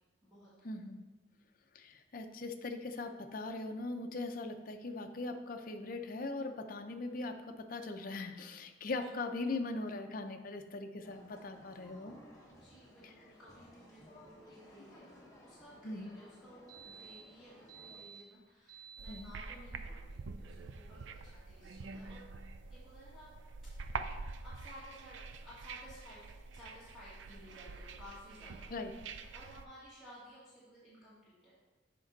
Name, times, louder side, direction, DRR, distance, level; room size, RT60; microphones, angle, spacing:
voice 1, 0.6-1.0 1.7-12.1 13.0-13.1 15.8-16.2 19.1-19.3 28.7-28.9, left 2 dB, 45° left, 6 dB, 0.5 m, -40 dB
sound 1, 11.0-18.0, left 1 dB, 15° left, 1.1 m, -58 dB
voice 2, 12.5-15.1 15.4-22.2 22.7-23.3 23.8-29.0 29.3-31.6, equal, ahead, -12 dB, 1.8 m, -56 dB
sound 2, 14.5-14.6 14.7-14.8 15.2-15.3 15.6-15.8 16.7-17.3 17.7-19.5, right 7 dB, 40° right, 1.6 m, -53 dB
sound 3, 19.0-29.7, right 4 dB, 75° right, 0.4 m, -46 dB
7.5 x 5.3 x 4.0 m, 1.2 s
head